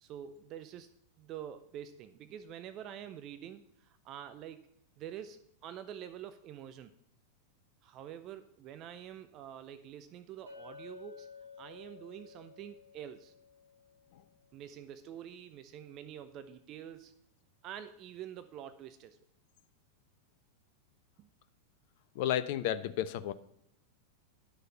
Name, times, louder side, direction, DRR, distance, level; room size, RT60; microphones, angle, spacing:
voice 1, 0.0-0.9 1.2-4.7 5.0-6.9 7.8-11.3 11.6-13.3 14.5-17.1 17.6-19.2 21.2-21.3, right 10 dB, 35° right, 11 dB, 0.6 m, -47 dB
Chink clink, 10.5-14.7, left 5 dB, 85° right, 4.0 m, -53 dB
voice 2, 22.2-23.3, left 11 dB, 50° left, 13 dB, 0.5 m, -32 dB
11.0 x 6.4 x 5.7 m, 0.76 s
figure-of-eight pair, 90°, 0 cm